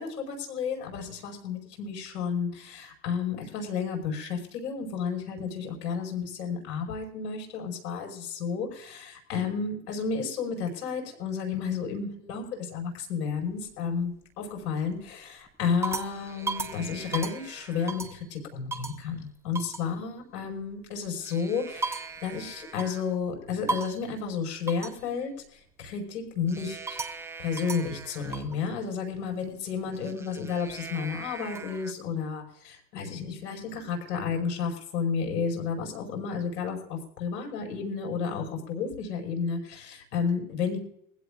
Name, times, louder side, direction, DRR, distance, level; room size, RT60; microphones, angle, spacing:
voice 1, 0.0-27.0 27.4-40.8, left 6 dB, 75° left, 2 dB, 5.5 m, -32 dB
sound 1, 13.4-14.1 14.6-15.0 15.5-18.3 18.7-19.0 19.5-19.9 21.0-23.2 23.7-24.1 24.7-25.0 26.5-28.6 29.9-31.9, right 3 dB, 5° right, 0.5 m, -37 dB
21.5 x 16.0 x 2.5 m, 0.68 s
supercardioid pair, 135°, 48 cm